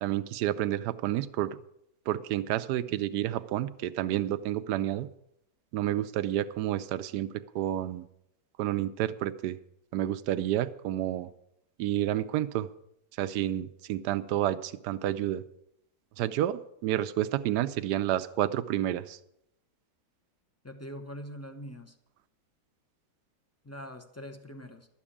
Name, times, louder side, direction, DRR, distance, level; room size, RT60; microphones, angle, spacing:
voice 1, 0.0-1.6 2.1-5.1 5.7-8.0 8.6-9.6 9.9-11.3 11.8-12.7 13.2-15.4 16.2-19.2, right 13 dB, 75° right, 12 dB, 1.2 m, -30 dB
voice 2, 20.6-21.9 23.6-24.9, equal, 15° left, 6 dB, 0.6 m, -43 dB
12.5 x 7.2 x 8.5 m, 0.79 s
omnidirectional pair, 1.8 m